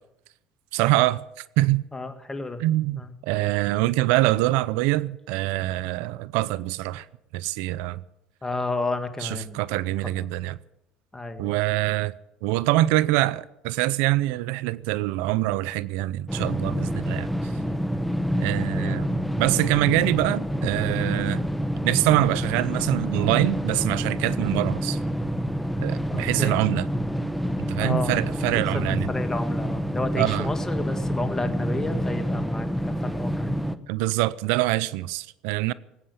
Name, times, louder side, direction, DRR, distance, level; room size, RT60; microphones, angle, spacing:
voice 1, 0.7-1.2 1.6-1.8 2.6-7.1 7.3-8.0 9.2-10.6 11.4-12.1 12.4-17.5 18.4-21.4 21.8-25.0 25.8-26.9 27.6-29.1 30.2-30.5 33.9-35.7, right 17 dB, 75° right, 0.5 m, -24 dB
voice 2, 1.9-2.6 3.0-3.1 8.4-9.6 11.1-11.5 18.7-19.3 26.1-26.6 27.8-28.1 28.7-33.5, left 3 dB, 15° left, 1.9 m, -32 dB
sound 1, 16.3-33.8, equal, ahead, 1.0 m, -27 dB
18.5 x 8.7 x 8.2 m
supercardioid pair, 80°, 3 cm